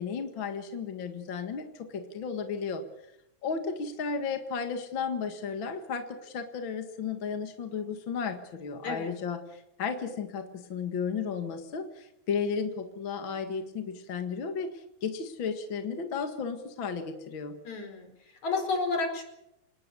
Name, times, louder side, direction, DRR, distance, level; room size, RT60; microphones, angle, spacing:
voice 1, 0.0-2.8 3.4-17.5, left 6 dB, 45° left, 6 dB, 2.2 m, -34 dB
voice 2, 17.7-18.1 18.4-19.2, left 3 dB, 70° left, 4 dB, 5.9 m, -30 dB
27.5 x 19.5 x 7.0 m, 0.84 s
omnidirectional pair, 3.4 m